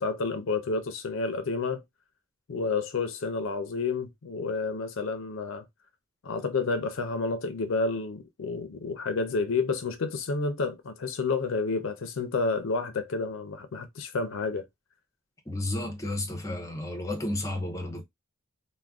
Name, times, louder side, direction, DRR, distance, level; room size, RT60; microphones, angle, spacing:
voice 1, 0.0-1.8 2.5-5.6 6.2-14.7, left 4 dB, 65° left, 0.4 m, -30 dB
voice 2, 15.5-18.0, left 1 dB, 15° left, 0.5 m, -32 dB
2.4 x 2.1 x 3.4 m
head